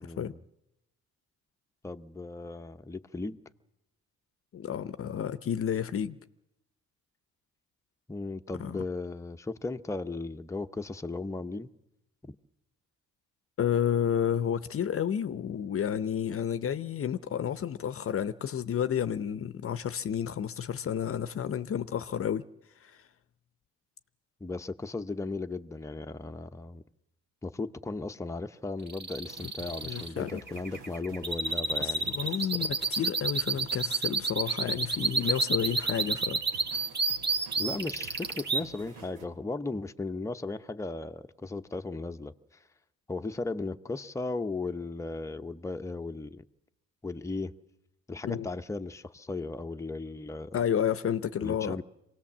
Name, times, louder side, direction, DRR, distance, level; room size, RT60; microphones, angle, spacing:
voice 1, 0.0-0.4 1.8-3.4 8.1-11.7 24.4-26.8 27.4-32.3 37.6-42.3 43.1-46.4 47.0-47.6 48.1-50.6 51.4-51.8, left 3 dB, 10° left, 0.8 m, -36 dB
voice 2, 4.5-6.2 8.6-8.8 13.6-22.4 22.8-22.9 29.4-29.5 29.8-30.4 31.8-36.4 48.2-48.5 50.5-51.8, left 9 dB, 45° left, 0.7 m, -31 dB
sound 1, 28.9-38.6, right 3 dB, 35° right, 1.5 m, -30 dB
sound 2, 29.3-39.3, right 4 dB, 90° right, 2.9 m, -50 dB
24.5 x 18.0 x 7.3 m
cardioid pair, 90°, 30 cm